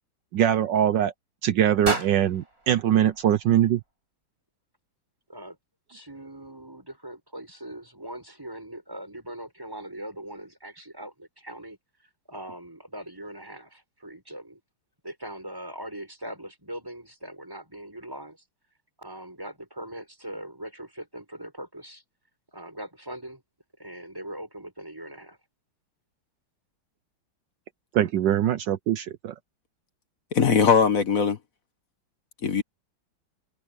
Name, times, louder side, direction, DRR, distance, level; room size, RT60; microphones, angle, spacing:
voice 1, 0.3-1.1 1.4-3.8 28.0-29.0, right 10 dB, 70° right, 1.3 m, -22 dB
sound 1, 1.8-4.0, right 3 dB, 45° right, 5.7 m, -34 dB
voice 2, 5.9-11.8 12.3-14.6 15.0-18.4 19.0-22.0 22.5-23.4 23.8-25.4, right 1 dB, 10° right, 7.0 m, -40 dB
voice 3, 30.3-31.4 32.4-32.6, left 6 dB, 50° left, 1.5 m, -20 dB
omnidirectional pair, 2.2 m